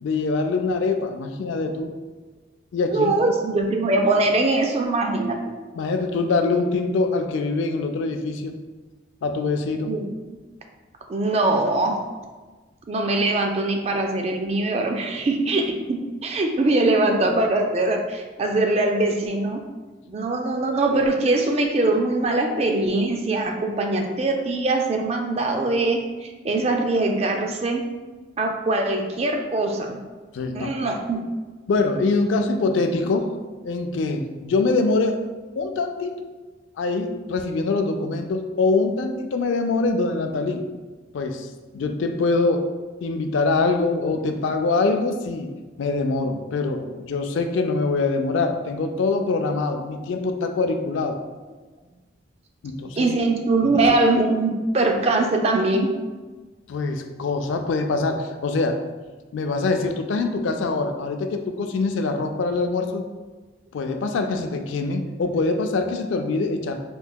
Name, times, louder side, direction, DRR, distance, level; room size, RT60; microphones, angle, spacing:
voice 1, 0.0-1.9 2.7-3.1 5.7-8.6 9.2-10.0 30.3-30.7 31.7-33.3 33.6-35.2 35.6-36.1 36.8-40.6 41.1-41.5 41.7-42.7 43.0-45.5 45.8-51.2 52.6-53.1 53.8-54.0 56.7-58.8 59.3-63.1 63.7-66.8, left 3 dB, 75° left, 6 dB, 0.3 m, -24 dB
voice 2, 2.9-5.4 9.8-10.1 11.1-12.0 12.9-15.6 15.9-19.6 20.1-27.8 28.4-30.0 30.5-31.2 53.0-55.9, right 2 dB, 30° right, 3 dB, 0.3 m, -22 dB
4.5 x 2.7 x 2.2 m, 1.3 s
head